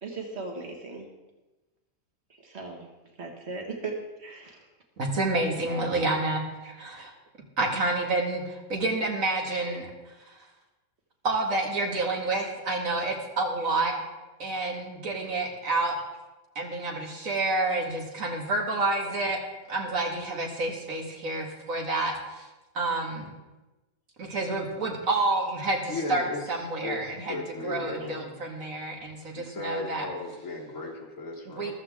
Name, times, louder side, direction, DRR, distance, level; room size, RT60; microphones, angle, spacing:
voice 1, 0.0-1.1 2.4-2.9 3.2-4.7 18.7-18.8 25.5-25.6 28.0-28.1, right 3 dB, 50° right, 2 dB, 2.1 m, -38 dB
voice 2, 5.0-7.1 7.6-9.9 10.3-10.4 11.2-14.0 14.4-16.0 16.6-19.4 19.7-22.5 22.7-23.3 24.2-30.1 31.5-31.7, right 2 dB, 65° right, 0 dB, 2.4 m, -29 dB
voice 3, 25.9-26.5 26.8-28.4 29.3-31.7, left 2 dB, 65° left, -2 dB, 1.8 m, -36 dB
14.0 x 13.5 x 3.7 m, 1.1 s
omnidirectional pair, 1.5 m